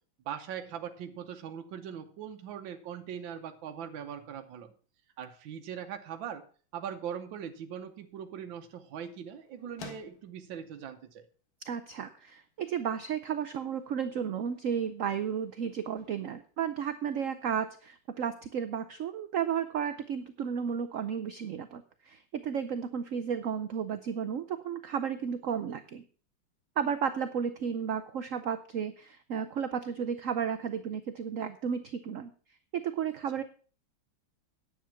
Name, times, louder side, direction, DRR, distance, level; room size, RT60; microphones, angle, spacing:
voice 1, 0.2-4.7 5.2-6.5 6.7-11.2, right 8 dB, 80° right, 5 dB, 1.6 m, -41 dB
sound 1, 7.7-17.5, left 4 dB, 50° left, 1.8 m, -57 dB
voice 2, 11.7-26.0 26.8-32.3 32.7-33.4, right 7 dB, 65° right, 10 dB, 0.8 m, -33 dB
10.0 x 8.1 x 5.8 m, 0.41 s
omnidirectional pair, 2.1 m